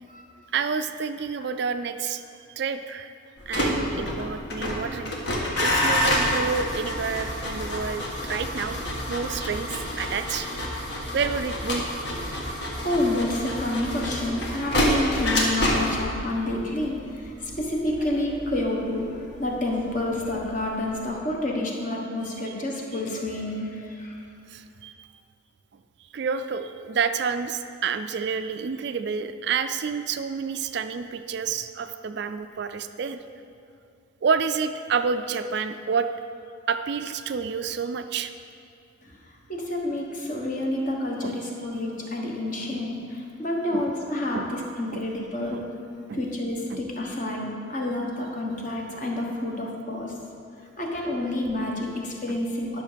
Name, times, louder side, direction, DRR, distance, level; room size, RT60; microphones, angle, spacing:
voice 1, 0.5-2.2 2.6-3.1 3.5-5.2 5.5-8.8 9.1-11.8 22.5-22.6 22.9-23.0 24.5-25.1 26.1-33.2 34.2-36.1 36.7-38.3 41.2-41.4 42.7-42.8 43.7-43.9 44.3-44.5 44.9-45.0 45.5-45.6 46.1-46.2 46.7-46.8 47.3-47.4 48.5-48.6 52.3-52.4, right 6 dB, 55° right, 9 dB, 0.4 m, -29 dB
sound 1, 3.4-20.4 20.6-21.1, equal, 55° left, 1.5 m, -28 dB
voice 2, 12.6-24.1 39.0-39.2 39.5-45.6 46.1-50.1 50.8-52.8, left 1 dB, 40° left, -1 dB, 1.3 m, -29 dB
11.5 x 6.3 x 5.1 m, 2.5 s
head